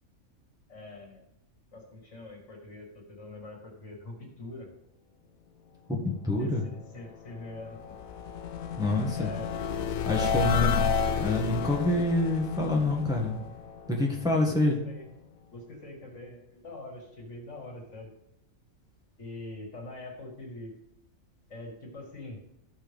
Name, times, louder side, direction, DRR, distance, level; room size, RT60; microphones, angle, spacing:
voice 1, 0.7-1.3 1.7-4.7 6.4-8.0 9.0-10.8 14.4-14.6 14.9-15.1 15.5-18.1 19.2-20.8 21.5-22.4, left 2 dB, 60° left, 0 dB, 2.2 m, -44 dB
voice 2, 5.9-6.6 8.8-9.3 10.0-10.8 11.2-13.4 13.9-14.8, left 2 dB, 5° right, -1 dB, 1.3 m, -27 dB
sound 1, 7.1-14.3, left 7 dB, 85° left, 1.0 m, -31 dB
13.5 x 5.6 x 3.5 m, 0.80 s
omnidirectional pair, 1.4 m